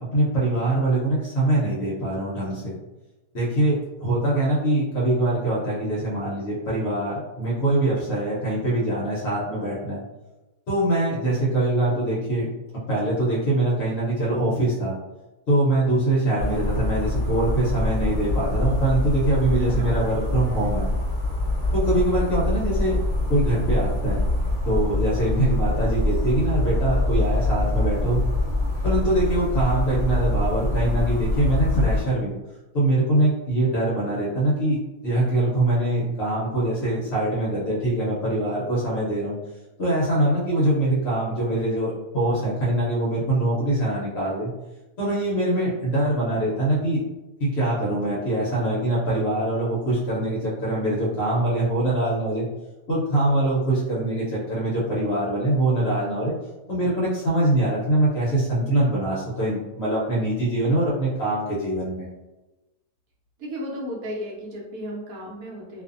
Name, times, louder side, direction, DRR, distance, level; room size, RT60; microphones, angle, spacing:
voice 1, 0.1-2.8 3.3-10.0 10.7-12.5 12.7-15.0 15.5-20.9 21.7-23.0 23.3-24.2 24.6-28.2 28.8-32.3 32.7-39.4 39.8-44.5 45.0-47.0 47.4-52.5 52.9-56.3 56.7-62.1, right 1 dB, 55° left, -6 dB, 0.9 m, -23 dB
sound 1, 16.4-32.0, left 1 dB, 40° right, 1.0 m, -24 dB
voice 2, 19.4-19.9 63.4-65.8, equal, 70° right, -3 dB, 1.1 m, -34 dB
2.6 x 2.5 x 2.5 m, 1.1 s
omnidirectional pair, 1.6 m